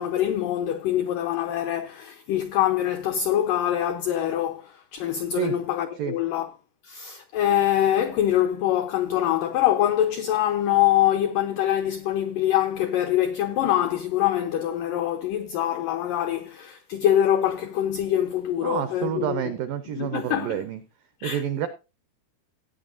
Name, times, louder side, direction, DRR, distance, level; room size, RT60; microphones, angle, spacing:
voice 1, 0.0-6.5 6.8-19.5 20.0-20.6 21.2-21.7, left 11 dB, 85° left, 1.9 m, -24 dB
voice 2, 18.6-20.8 21.2-21.7, right 10 dB, 85° right, 1.9 m, -28 dB
17.0 x 8.9 x 2.5 m
omnidirectional pair, 4.9 m